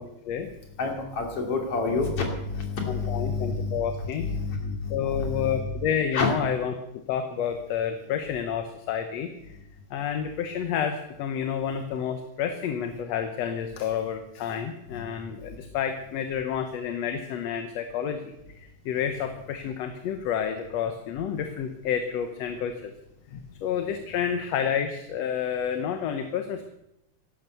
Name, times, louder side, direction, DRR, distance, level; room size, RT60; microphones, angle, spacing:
voice 1, 0.8-3.8 4.2-5.7 6.1-6.3 14.9-15.1, left 4 dB, 50° left, 2 dB, 3.7 m, -29 dB
voice 2, 2.9-4.3 4.9-6.7 7.1-9.6 9.9-22.9 23.3-26.7, left 8 dB, 70° left, 7 dB, 2.1 m, -30 dB
15.5 x 12.0 x 6.8 m, 0.84 s
omnidirectional pair, 3.3 m